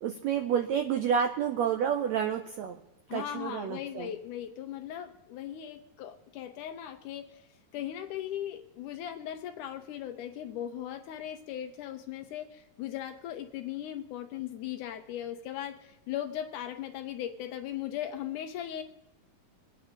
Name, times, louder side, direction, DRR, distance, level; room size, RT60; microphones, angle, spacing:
voice 1, 0.0-2.8 3.1-4.1, right 8 dB, 90° right, 5 dB, 1.5 m, -29 dB
voice 2, 3.1-7.4 7.7-18.8, left 11 dB, 80° left, 7 dB, 2.0 m, -38 dB
25.5 x 9.1 x 3.8 m, 0.89 s
omnidirectional pair, 4.0 m